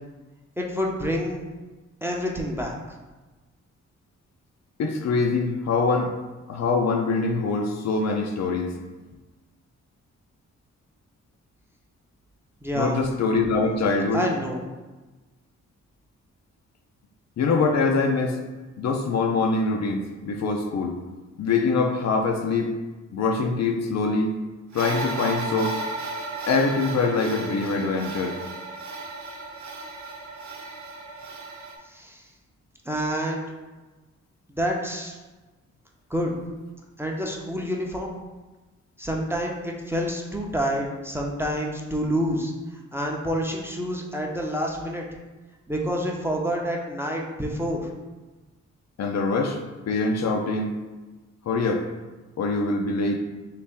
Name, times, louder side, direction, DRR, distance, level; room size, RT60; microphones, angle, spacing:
voice 1, 0.6-1.5 2.0-2.7 12.6-13.0 14.1-14.6 31.8-32.3 32.8-33.4 34.6-35.2 36.1-36.4 37.0-38.1 39.0-42.5 42.9-45.0 45.7-47.9, equal, 10° right, -1 dB, 0.6 m, -28 dB
voice 2, 4.8-6.1 6.5-8.7 12.8-14.2 17.4-18.4 18.8-21.0 21.4-22.7 23.1-24.3 24.7-25.8 26.5-28.4 49.0-49.6 49.9-50.8 51.5-51.8 52.4-53.2, left 4 dB, 60° left, 3 dB, 0.5 m, -24 dB
sound 1, 24.7-31.8, right 3 dB, 70° right, 0.6 m, -34 dB
3.1 x 2.8 x 3.5 m, 1.2 s
cardioid pair, 65°, 30 cm